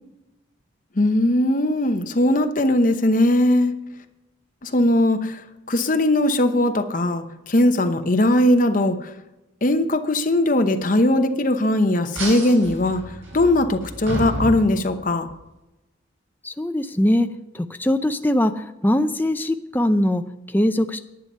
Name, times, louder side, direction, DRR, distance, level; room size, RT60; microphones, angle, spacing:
voice 1, 1.0-3.7 4.6-5.4 5.7-9.1 9.6-15.3, left 1 dB, 40° left, 7 dB, 0.9 m, -19 dB
sound 1, 12.1-15.3, right 1 dB, 80° right, 4.6 m, -31 dB
voice 2, 16.4-17.3 17.5-21.0, left 1 dB, 10° left, 8 dB, 0.5 m, -21 dB
10.5 x 9.6 x 5.4 m, 0.96 s
head